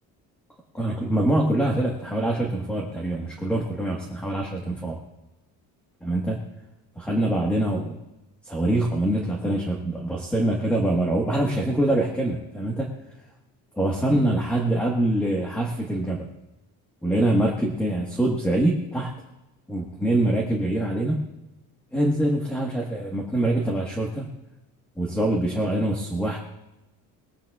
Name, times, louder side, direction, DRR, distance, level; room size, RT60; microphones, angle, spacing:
voice 1, 0.7-5.0 6.0-6.4 7.0-8.0 8.4-12.9 13.8-16.3 17.0-19.1 19.7-21.3 21.9-24.3 25.0-26.4, right 1 dB, 5° left, -1 dB, 1.4 m, -24 dB
21.5 x 16.5 x 2.4 m, 0.94 s
cardioid pair, 180°, 35 cm